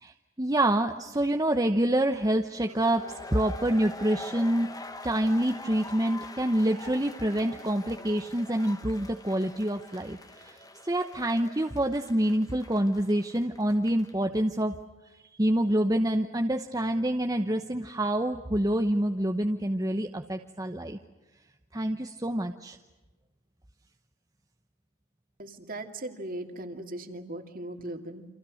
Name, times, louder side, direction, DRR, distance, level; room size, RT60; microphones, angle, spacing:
voice 1, 0.0-4.7 5.0-14.8 15.3-21.0 21.7-22.8, right 1 dB, 15° right, 5 dB, 0.9 m, -27 dB
sound 1, 2.6-14.2, left 2 dB, 15° left, 1.3 m, -45 dB
voice 2, 25.4-28.3, right 1 dB, 40° right, 6 dB, 2.5 m, -38 dB
29.0 x 26.5 x 6.5 m, 1.2 s
head